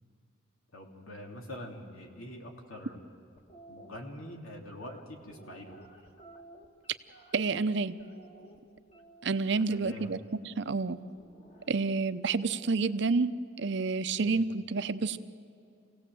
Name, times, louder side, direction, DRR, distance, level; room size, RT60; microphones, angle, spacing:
voice 1, 0.7-3.0 3.7-5.8 9.5-10.1 14.3-14.4, left 1 dB, 90° left, 1 dB, 2.9 m, -45 dB
sound 1, 3.4-3.9 4.7-7.6 8.0-9.5 10.7-12.0, right 2 dB, 30° left, 1.6 m, -54 dB
voice 2, 7.3-8.0 9.2-10.2 10.4-11.0 11.7-15.2, right 4 dB, 55° right, 12 dB, 0.6 m, -29 dB
27.0 x 17.5 x 7.7 m, 2.5 s
head